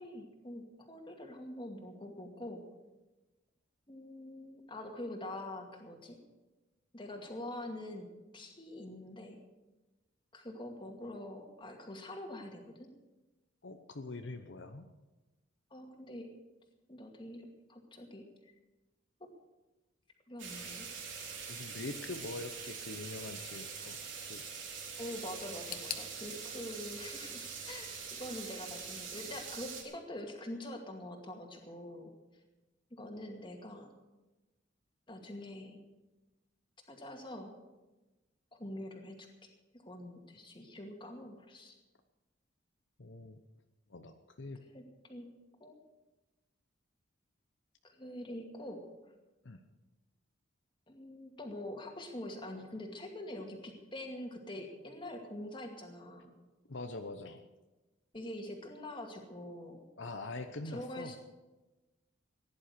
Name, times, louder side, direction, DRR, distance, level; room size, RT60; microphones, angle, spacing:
voice 1, 0.0-2.6 3.9-6.2 6.9-8.1 8.3-9.4 10.3-12.9 15.7-16.3 16.9-18.5 20.3-20.9 25.0-32.1 32.9-33.9 35.1-35.8 36.9-37.5 38.5-41.8 44.7-45.3 45.6-45.8 47.8-48.8 50.9-56.3 58.1-59.8 60.6-61.2, left 1 dB, 25° left, 3 dB, 2.3 m, -45 dB
voice 2, 13.6-14.9 21.5-24.0 24.3-24.4 43.0-43.4 43.9-44.6 49.4-49.6 56.7-57.4 60.0-61.1, left 2 dB, 70° left, 7 dB, 0.9 m, -43 dB
sound 1, 20.4-29.8, right 5 dB, 75° right, 3.7 m, -44 dB
sound 2, 25.7-28.6 28.8-29.6 29.9-30.0 30.9-31.0, left 8 dB, 50° left, 1.2 m, -48 dB
16.5 x 10.5 x 6.7 m, 1.1 s
head